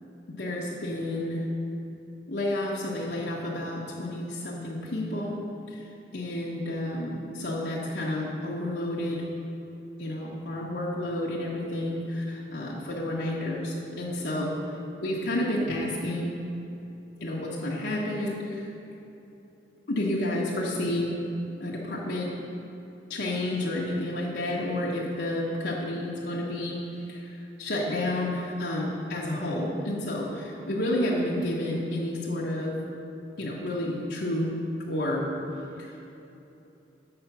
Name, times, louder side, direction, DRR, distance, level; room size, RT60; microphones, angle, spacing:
voice 1, 0.4-1.4 2.3-5.4 5.7-5.8 6.1-9.2 10.0-14.5 15.0-16.3 17.2-18.7 19.9-21.1 21.6-22.3 23.1-26.8 27.1-27.3 27.6-32.8 33.4-34.5 34.9-35.2 35.8-36.0, left 1 dB, 70° left, -5 dB, 0.9 m, -30 dB
7.8 x 5.1 x 5.8 m, 3.0 s
head